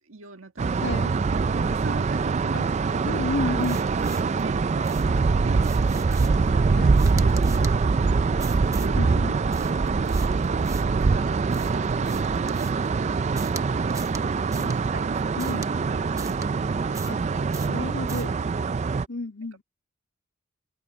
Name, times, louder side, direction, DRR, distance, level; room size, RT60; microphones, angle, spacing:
voice 1, 0.1-0.9 1.3-2.6 3.4-3.5 4.0-5.8 6.4-6.8 7.2-9.1 10.8-14.1 14.6-15.5 15.9-16.6 16.9-17.9, right 2 dB, 65° right, 1.7 m, -42 dB
sound 1, 0.6-19.0, right 4 dB, 30° right, 0.3 m, -24 dB
voice 2, 0.8-1.1 2.5-2.6 3.0-3.8 6.7-7.0 8.9-9.4 14.6-14.7 15.4-15.7 17.1-17.2 17.7-18.3 19.1-19.6, left 2 dB, 55° left, 3.1 m, -31 dB
sound 2, 3.6-4.4 4.8-5.2 5.6-6.5 6.9-7.8 8.4-9.0 9.5-11.0 11.5-12.9 13.4-13.6 13.9-14.2 14.5-14.8 15.4-15.7 16.2-16.5 16.9-17.2 17.5-17.8 18.1-18.3, right 5 dB, 15° right, 0.9 m, -43 dB
open air
head